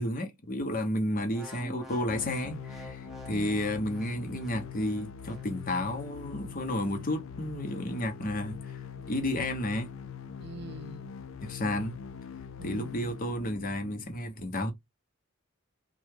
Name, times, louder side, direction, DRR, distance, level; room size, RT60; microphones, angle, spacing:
voice 1, 0.0-8.6 9.1-9.9 11.4-12.0 12.6-14.7, left 1 dB, 40° left, 0.8 m, -32 dB
sound 1, 1.2-5.5 6.0-6.3, equal, ahead, 0.6 m, -48 dB
sound 2, 2.1-14.1, left 7 dB, 65° left, 0.4 m, -43 dB
voice 2, 3.3-3.6 10.4-11.1 12.6-13.1, right 3 dB, 50° right, 0.6 m, -44 dB
3.3 x 2.3 x 3.1 m
head